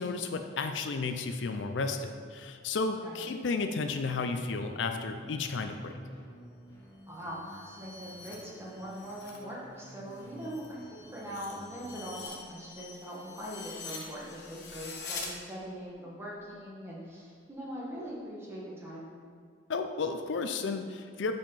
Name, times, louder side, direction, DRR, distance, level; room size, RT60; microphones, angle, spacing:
voice 1, 0.0-5.9 19.7-21.3, left 4 dB, 75° left, 6 dB, 0.5 m, -33 dB
voice 2, 3.0-3.4 7.1-19.1, equal, 15° right, -5 dB, 1.4 m, -42 dB
sound 1, 4.1-12.3, equal, 25° left, 1.5 m, -52 dB
sound 2, 7.0-9.4 9.8-15.3, left 4 dB, 55° left, 1.1 m, -45 dB
5.3 x 5.2 x 5.7 m, 2.1 s
head